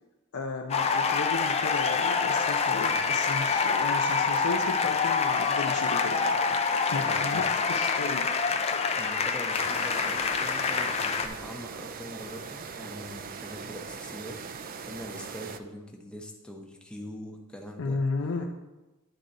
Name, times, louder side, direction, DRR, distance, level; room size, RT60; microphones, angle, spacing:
voice 1, 0.3-6.4 6.9-8.3 17.8-18.5, left 3 dB, 80° left, 2 dB, 0.5 m, -34 dB
sound 1, 0.7-11.3, left 5 dB, 30° left, 0.4 m, -26 dB
voice 2, 7.0-7.5 9.0-18.0, equal, 5° left, 1 dB, 0.8 m, -43 dB
sound 2, 9.5-15.6, right 5 dB, 40° right, 0.4 m, -40 dB
10.0 x 3.8 x 4.0 m, 1.1 s
head